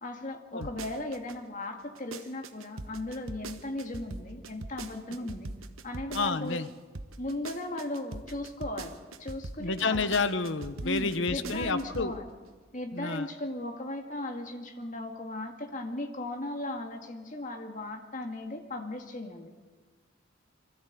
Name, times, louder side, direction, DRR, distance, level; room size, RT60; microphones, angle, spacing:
voice 1, 0.0-5.5 5.8-6.6 7.2-10.1 10.8-12.4 12.7-19.5, left 1 dB, 40° left, 4 dB, 2.1 m, -37 dB
sound 1, 0.6-1.4 1.8-6.7 6.9-12.1 12.4-12.5, right 3 dB, 90° right, 1.1 m, -41 dB
voice 2, 6.1-6.7 9.6-12.1 12.9-13.3, left 4 dB, 65° left, 12 dB, 1.0 m, -30 dB
24.5 x 13.5 x 8.4 m, 1.4 s
head